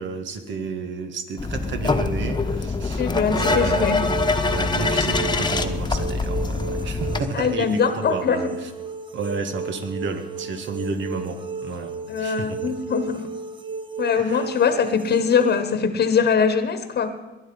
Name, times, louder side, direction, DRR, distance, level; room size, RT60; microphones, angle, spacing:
voice 1, 0.0-8.7 9.1-11.9 12.2-12.7 14.2-14.5, right 4 dB, 70° right, 7 dB, 1.8 m, -31 dB
sound 1, 1.4-7.2, left 3 dB, 20° left, 1.2 m, -24 dB
voice 2, 3.0-4.0 7.3-8.4 12.1-13.3 14.0-17.1, left 6 dB, 55° left, 9 dB, 1.2 m, -22 dB
sound 2, 3.3-15.7, right 4 dB, 25° right, 1.0 m, -34 dB
20.5 x 10.5 x 5.4 m, 1.2 s
cardioid pair, 90°, 20 cm